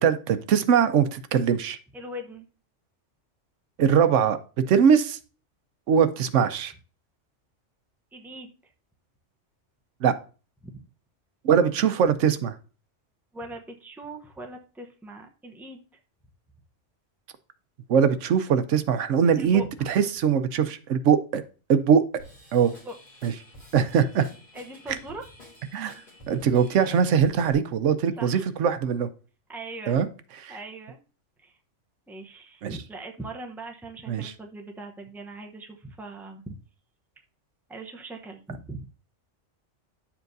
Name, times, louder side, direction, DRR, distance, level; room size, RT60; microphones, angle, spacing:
voice 1, 0.0-1.8 3.8-4.4 4.7-5.2 5.9-6.7 10.0-10.2 11.4-12.5 17.9-21.4 21.7-22.0 22.5-22.7 23.2-23.3 23.7-24.3 25.7-25.9 26.3-29.1 29.9-30.1 30.4-30.6 32.6-32.7 34.1-34.3, right 7 dB, 80° right, 11 dB, 1.0 m, -21 dB
voice 2, 1.9-2.5 8.1-8.5 10.6-10.8 13.3-15.8 19.4-19.9 22.8-22.9 24.5-25.3 28.2-28.5 29.5-30.0 30.5-31.0 31.4-31.6 32.1-36.6 37.7-38.9, right 2 dB, ahead, 3 dB, 0.7 m, -40 dB
Drum kit / Drum, 22.2-27.5, equal, 45° left, 3.3 m, -49 dB
10.0 x 7.2 x 2.7 m, 0.36 s
omnidirectional pair, 1.2 m